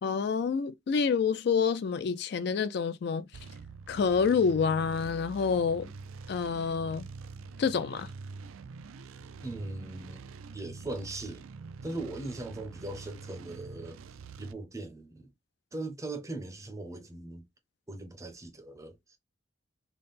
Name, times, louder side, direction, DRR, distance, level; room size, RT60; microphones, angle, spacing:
voice 1, 0.0-3.2 3.9-5.9 6.3-7.1 7.6-8.1, left 5 dB, 55° left, 0.3 m, -28 dB
sound 1, 3.3-14.5, right 4 dB, 85° right, 0.4 m, -45 dB
voice 2, 9.4-10.2 10.5-11.5 11.8-14.0 14.4-15.3 15.7-17.4 17.9-19.2, right 2 dB, 15° right, 0.5 m, -39 dB
3.5 x 2.0 x 3.9 m
head